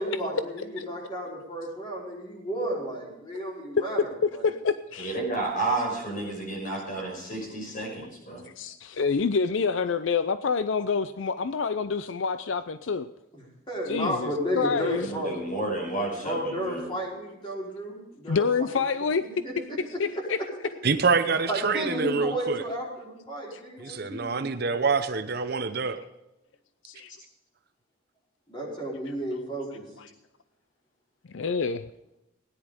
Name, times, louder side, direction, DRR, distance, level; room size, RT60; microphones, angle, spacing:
voice 1, 0.0-4.1 4.3-4.5 13.3-15.5 16.2-18.4 18.8-18.9 19.4-20.0 21.5-24.3 28.5-29.8, equal, 25° left, -3 dB, 5.0 m, -32 dB
voice 2, 4.4-5.1 8.6-13.1 13.9-15.1 18.3-19.2 20.0-20.4 23.5-23.6 26.9-27.1 30.0-30.1 31.3-31.9, left 5 dB, 75° left, 13 dB, 0.5 m, -27 dB
voice 3, 5.0-8.5 15.0-16.9, right 2 dB, 45° left, 0 dB, 5.7 m, -31 dB
voice 4, 20.8-22.6 23.8-26.0, right 4 dB, 50° right, 9 dB, 0.8 m, -26 dB
17.5 x 10.5 x 5.1 m, 0.94 s
head